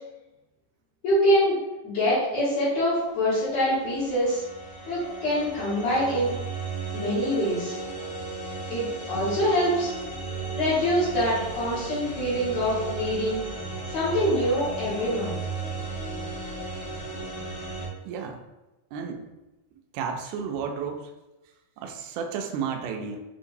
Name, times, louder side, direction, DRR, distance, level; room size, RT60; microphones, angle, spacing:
voice 1, 1.0-4.4 4.9-6.3 6.9-7.8 8.7-9.9 10.5-13.4 13.9-15.4, equal, 55° left, -13 dB, 2.6 m, -25 dB
sound 1, 3.5-17.9, right 3 dB, 75° left, 3.1 m, -35 dB
voice 2, 18.1-18.4 18.9-19.3 19.9-21.1 21.8-23.2, right 6 dB, 85° right, 4 dB, 2.1 m, -32 dB
6.3 x 2.8 x 2.6 m, 1.0 s
omnidirectional pair, 3.6 m